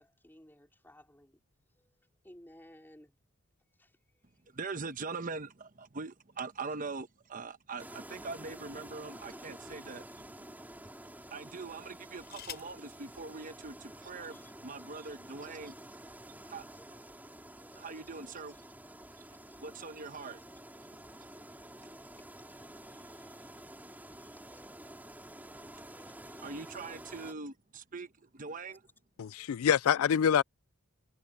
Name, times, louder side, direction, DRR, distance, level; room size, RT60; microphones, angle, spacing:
voice 1, 0.0-1.4 1.7-3.2 3.7-4.6 9.3-9.7 14.3-14.6 15.4-17.9 18.5-19.6 20.5-26.7 28.5-28.8 29.4-29.7, left 1 dB, 10° left, 4.6 m, -62 dB
voice 2, 4.5-10.5 11.3-15.7 16.4-16.7 17.7-18.6 19.1-19.2 19.6-20.4 20.8-21.0 26.4-28.8, right 4 dB, 40° right, 1.1 m, -42 dB
sound 1, 7.8-27.3, right 1 dB, 10° right, 4.2 m, -50 dB
sound 2, 11.9-12.9 14.0-14.1 14.4-14.8, left 10 dB, 50° left, 6.4 m, -50 dB
voice 3, 29.2-30.4, left 8 dB, 85° left, 0.4 m, -26 dB
head